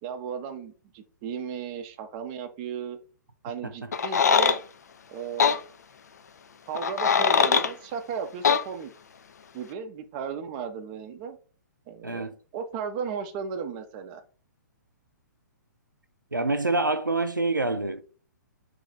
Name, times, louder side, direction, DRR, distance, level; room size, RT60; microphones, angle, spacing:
voice 1, 0.0-3.0 3.4-4.6 5.1-5.6 6.7-8.9 9.5-11.4 11.9-12.3 12.5-14.2, right 6 dB, 30° right, 0.5 m, -35 dB
sound 1, 3.9-4.6 5.4-5.6 6.7-7.7 8.4-8.6, left 6 dB, 60° left, 0.4 m, -21 dB
voice 2, 12.0-12.3 16.3-18.0, right 2 dB, 90° right, 0.4 m, -26 dB
3.2 x 2.7 x 3.9 m
figure-of-eight pair, 120°, 10 cm